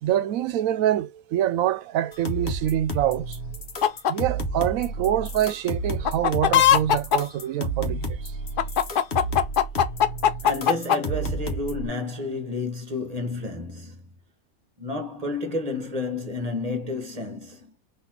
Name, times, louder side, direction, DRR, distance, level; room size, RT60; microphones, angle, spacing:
voice 1, 0.0-3.4 4.1-8.4, right 11 dB, 75° right, 1.0 m, -25 dB
sound 1, 2.1-11.9, right 2 dB, 45° left, 1.1 m, -31 dB
sound 2, 3.8-4.1 6.1-7.2 8.6-11.0, left 10 dB, 60° left, 0.5 m, -18 dB
voice 2, 10.4-14.0 14.8-17.7, left 2 dB, 30° right, 1.1 m, -30 dB
4.1 x 2.9 x 4.4 m
omnidirectional pair, 1.5 m